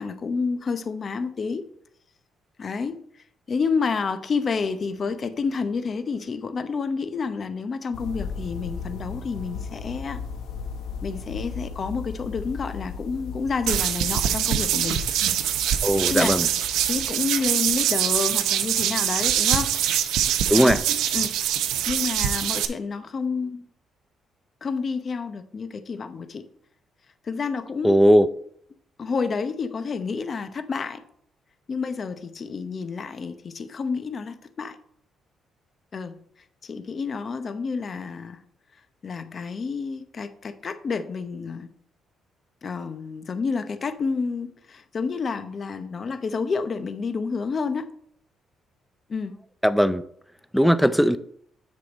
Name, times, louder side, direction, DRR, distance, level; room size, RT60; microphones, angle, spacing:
voice 1, 0.0-1.7 2.6-10.2 11.0-15.1 15.9-19.7 20.5-20.8 21.1-21.3 21.9-23.6 24.6-26.4 27.2-28.0 29.0-31.0 31.7-34.8 35.9-36.2 36.6-38.4 39.0-41.7 42.6-47.9 49.1-49.4 50.8-50.9, left 5 dB, 45° left, 0.7 m, -29 dB
sound 1, 7.9-17.1, left 6 dB, 85° left, 1.0 m, -36 dB
sound 2, 13.7-22.7, right 10 dB, 90° right, 0.6 m, -24 dB
voice 2, 15.8-16.5 20.5-20.8 27.8-28.3 49.6-50.0 50.5-51.2, equal, ahead, 0.4 m, -18 dB
7.9 x 6.4 x 4.0 m
cardioid pair, 90°, 0 cm